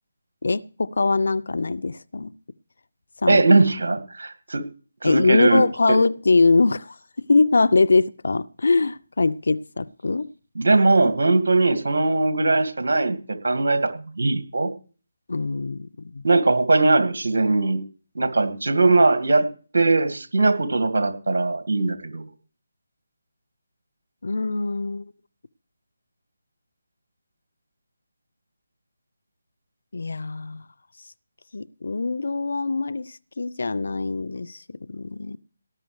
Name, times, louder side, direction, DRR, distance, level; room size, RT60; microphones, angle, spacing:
voice 1, 0.4-2.3 3.2-3.4 5.0-10.3 15.3-16.2 24.2-25.1 29.9-30.6 31.5-35.4, left 3 dB, 70° left, 0.6 m, -22 dB
voice 2, 3.3-4.7 5.0-5.7 10.6-14.7 16.2-17.8 18.2-19.5 19.7-22.3, right 3 dB, 70° right, 2.0 m, -20 dB
18.0 x 10.0 x 3.2 m
figure-of-eight pair, 155°, 0 cm